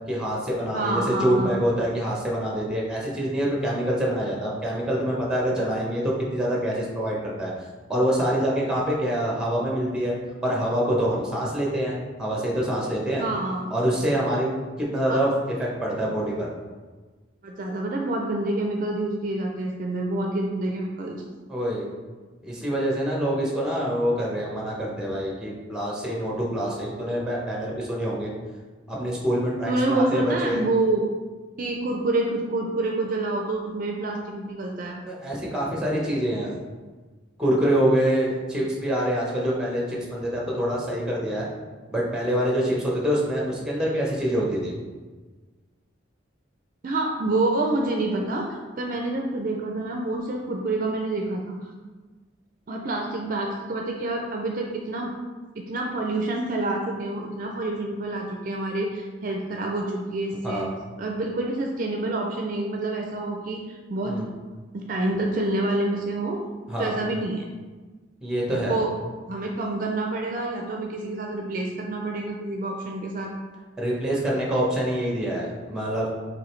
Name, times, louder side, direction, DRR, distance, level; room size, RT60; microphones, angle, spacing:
voice 1, 0.1-7.5 7.9-10.1 10.4-13.2 13.7-14.5 14.8-15.3 15.6-16.5 21.5-21.9 22.4-28.3 28.9-30.6 35.1-36.5 37.4-41.5 41.9-44.7 60.4-60.7 64.0-64.3 66.7-67.0 68.2-68.8 73.8-76.1, equal, 5° right, -3 dB, 0.8 m, -25 dB
voice 2, 0.7-1.6 13.2-13.7 15.1-15.2 17.4-21.2 29.7-31.0 31.6-35.0 46.8-51.7 52.7-55.1 55.6-60.7 61.0-64.2 64.7-66.4 66.8-67.4 68.7-68.9 69.3-73.3, right 2 dB, 45° right, 1 dB, 0.4 m, -27 dB
4.8 x 3.2 x 3.1 m, 1.3 s
head